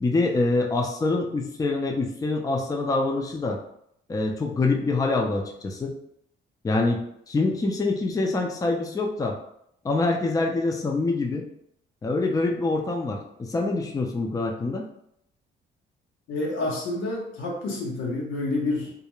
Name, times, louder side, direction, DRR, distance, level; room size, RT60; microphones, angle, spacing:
voice 1, 0.0-3.6 4.1-5.9 6.6-7.0 7.3-9.4 9.8-11.5 12.0-14.8, left 3 dB, 15° left, 2 dB, 0.4 m, -25 dB
voice 2, 16.3-18.9, left 2 dB, 85° left, -1 dB, 0.7 m, -28 dB
2.4 x 2.1 x 2.9 m, 0.73 s
cardioid pair, 90°, 20 cm